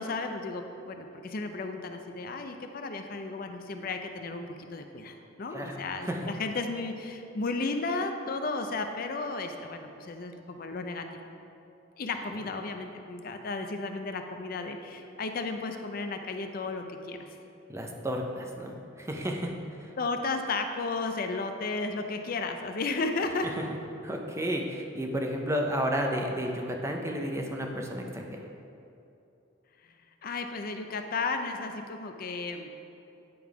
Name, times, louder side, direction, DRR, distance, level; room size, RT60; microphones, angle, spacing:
voice 1, 0.0-11.0 12.0-17.3 20.0-23.5 29.8-29.9 30.2-32.7, left 3 dB, 45° left, 6 dB, 0.5 m, -34 dB
voice 2, 5.5-6.2 17.7-19.5 19.8-19.9 24.0-28.4, equal, 15° right, 1 dB, 0.5 m, -32 dB
9.4 x 3.6 x 4.7 m, 2.8 s
head